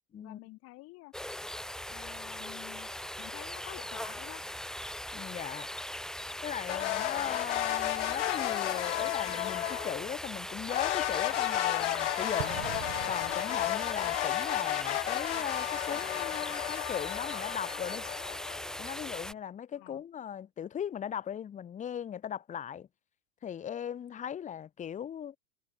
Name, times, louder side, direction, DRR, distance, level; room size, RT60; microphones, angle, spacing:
voice 1, 0.2-1.1 1.9-2.9 3.2-4.4 7.1-7.5 19.8-20.0, left 21 dB, 40° left, 2.2 m, -49 dB
sound 1, 1.1-19.3, left 1 dB, ahead, 1.4 m, -40 dB
voice 2, 5.1-5.7 6.4-12.6 13.1-18.0 18.8-22.9 23.4-25.4, left 9 dB, 20° left, 1.3 m, -38 dB
sound 2, 6.7-10.0 10.7-18.8, left 15 dB, 75° left, 0.6 m, -33 dB
Explosion, 12.4-14.0, right 34 dB, 40° right, 0.5 m, -42 dB
hypercardioid pair, 105°, 36 cm